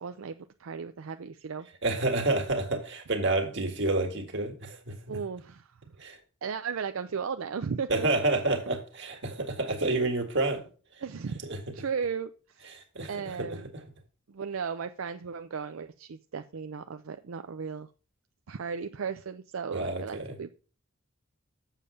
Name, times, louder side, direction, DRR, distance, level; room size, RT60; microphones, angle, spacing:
voice 1, 0.0-1.7 5.1-5.7 6.4-8.1 11.0-11.4 11.7-12.7 13.1-13.7 14.3-17.9 18.5-20.5, right 6 dB, 75° right, 9 dB, 0.5 m, -35 dB
voice 2, 1.8-5.2 6.0-6.2 7.9-10.7 11.4-11.6 12.7-13.6 19.7-20.4, right 2 dB, 60° right, 5 dB, 1.9 m, -29 dB
7.4 x 6.8 x 5.0 m, 0.37 s
head